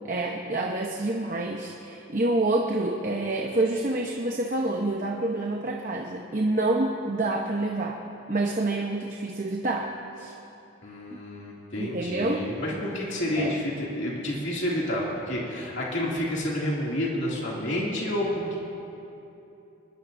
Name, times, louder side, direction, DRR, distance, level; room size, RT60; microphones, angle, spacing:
voice 1, 0.0-8.0 8.3-9.9 10.2-10.3 11.1-11.2 11.8-12.5 13.4-13.6, right 2 dB, 40° right, 0 dB, 0.9 m, -27 dB
voice 2, 10.8-18.6, left 1 dB, 60° left, -5 dB, 2.6 m, -29 dB
23.5 x 21.0 x 2.7 m, 2.9 s
head